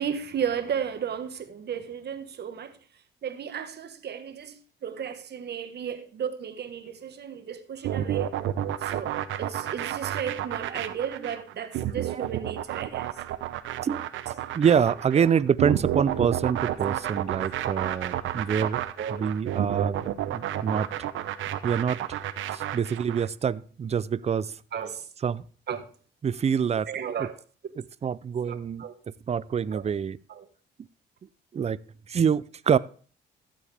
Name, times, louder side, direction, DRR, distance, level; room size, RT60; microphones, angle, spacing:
voice 1, 0.0-2.8 3.2-8.3 8.8-13.1 15.2-15.3 16.9-17.0 19.0-19.3 24.7-25.1 25.7-25.9 26.9-27.4 27.6-27.7 28.5-29.0 29.7-29.8 30.3-30.5, right 8 dB, 55° right, 1.4 m, -34 dB
sound 1, 7.8-23.3, right 12 dB, 80° right, 0.8 m, -30 dB
voice 2, 14.5-18.8 19.1-20.9 21.6-22.2 22.5-24.6 25.2-25.4 26.2-26.9 27.2-27.3 27.8-30.2 31.5-31.8 32.1-32.8, right 7 dB, 35° right, 0.5 m, -26 dB
14.5 x 7.5 x 3.5 m
cardioid pair, 90°, 20 cm